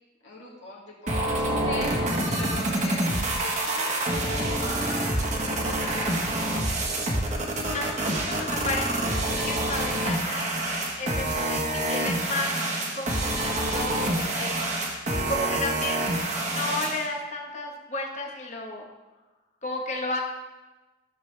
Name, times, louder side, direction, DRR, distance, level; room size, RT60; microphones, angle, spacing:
voice 1, 0.2-1.9 2.2-3.9 4.6-6.3, left 3 dB, 65° left, -5 dB, 2.2 m, -40 dB
sound 1, 1.1-17.1, right 1 dB, 35° right, 1.4 m, -27 dB
voice 2, 7.7-9.1 9.4-10.5 11.0-12.6 12.9-15.0 15.3-18.9 19.6-20.2, left 2 dB, 35° left, 0 dB, 1.4 m, -33 dB
14.0 x 7.0 x 3.4 m, 1.2 s
head